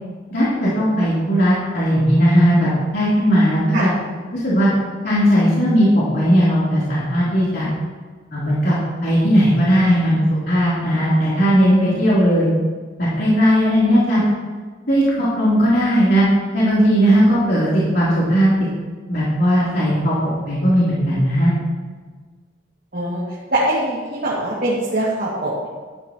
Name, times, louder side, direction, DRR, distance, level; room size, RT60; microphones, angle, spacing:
voice 1, 0.3-3.9 4.3-4.7 5.0-7.7 8.3-8.7 9.0-12.5 13.0-14.2 14.9-16.2 16.5-18.5 19.1-20.1 20.5-21.5, equal, 55° left, -9 dB, 3.4 m, -17 dB
voice 2, 23.5-25.7, right 1 dB, 50° right, -7 dB, 2.2 m, -22 dB
12.0 x 12.0 x 3.1 m, 1.4 s
head